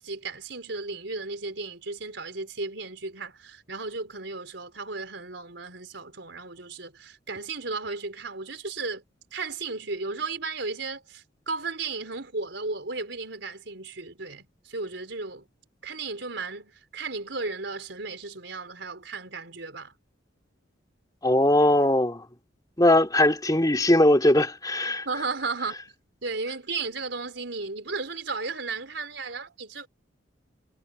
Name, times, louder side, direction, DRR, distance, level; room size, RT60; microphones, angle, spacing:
voice 1, 0.0-9.0 9.3-15.5 15.8-19.9 25.0-25.7 26.2-29.9, right 3 dB, 70° right, 4.7 m, -34 dB
voice 2, 21.2-22.2 22.8-25.1, left 1 dB, 20° left, 3.0 m, -20 dB
head